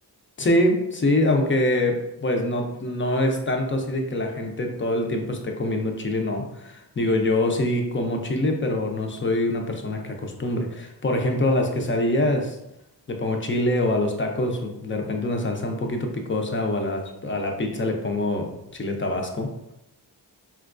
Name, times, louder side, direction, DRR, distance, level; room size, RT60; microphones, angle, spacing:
voice 1, 0.4-12.6 13.1-19.5, left 1 dB, 30° left, 2 dB, 0.4 m, -24 dB
4.4 x 2.2 x 2.4 m, 0.83 s
wide cardioid pair, 125°, 43 cm